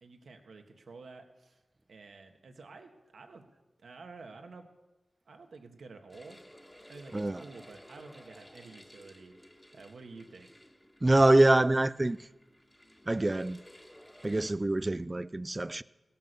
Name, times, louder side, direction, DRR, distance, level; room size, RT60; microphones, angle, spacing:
voice 1, 0.0-1.6 1.9-3.5 3.8-4.7 5.3-6.4 6.9-9.4 9.7-10.5, right 3 dB, 80° right, 1.6 m, -50 dB
sound 1, 6.1-14.5, equal, 10° left, 1.7 m, -55 dB
voice 2, 7.1-7.4 11.0-12.2 13.1-13.6 14.2-15.8, right 2 dB, 25° right, 0.4 m, -25 dB
16.5 x 10.5 x 6.8 m
cardioid pair, 65°, 0 cm